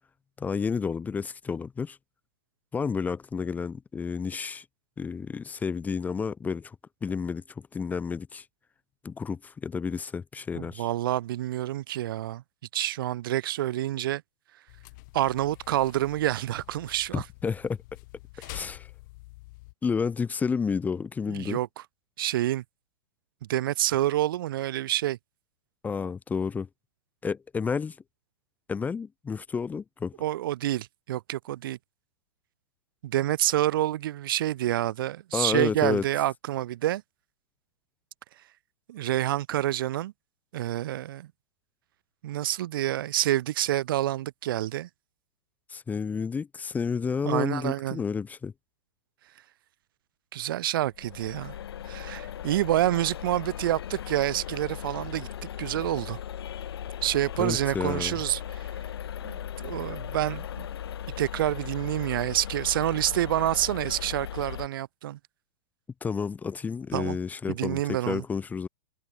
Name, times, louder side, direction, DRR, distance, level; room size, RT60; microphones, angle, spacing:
voice 1, 0.4-2.0 2.7-4.6 5.0-6.8 7.0-8.4 9.0-10.9 17.1-17.8 18.5-18.9 19.8-21.6 25.8-26.7 27.2-28.0 28.7-30.1 35.3-36.0 45.7-48.5 57.4-58.2 66.0-68.7, left 5 dB, 10° left, 0.7 m, -30 dB
voice 2, 10.5-12.4 12.7-14.2 15.1-17.2 21.3-21.7 22.2-22.6 23.5-25.2 30.2-31.8 33.0-37.0 38.9-40.1 40.5-41.3 42.2-44.9 47.2-48.0 50.3-51.5 51.9-55.3 55.6-56.2 57.0-58.7 59.2-60.7 61.2-65.2 66.9-67.2 67.5-68.2, right 14 dB, 60° right, 0.7 m, -28 dB
sound 1, 14.7-19.7, left 22 dB, 50° left, 6.5 m, -47 dB
sound 2, 50.9-64.7, left 10 dB, 75° left, 0.6 m, -38 dB
hypercardioid pair, 115°, 13 cm